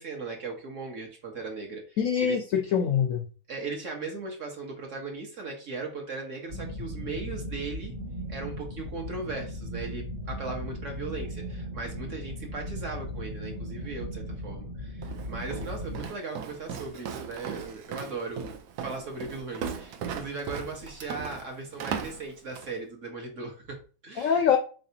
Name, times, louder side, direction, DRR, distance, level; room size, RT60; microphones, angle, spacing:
voice 1, 0.0-2.4 3.5-7.9 8.3-24.5, right 3 dB, 55° right, 2 dB, 1.0 m, -38 dB
voice 2, 2.0-3.2 24.2-24.6, left 8 dB, 75° left, 5 dB, 0.7 m, -24 dB
sound 1, 6.5-16.1, equal, 35° right, 1.0 m, -37 dB
Walk footsteps, 15.0-22.8, right 7 dB, 70° right, 1.1 m, -38 dB
4.1 x 3.3 x 2.7 m, 0.37 s
omnidirectional pair, 1.9 m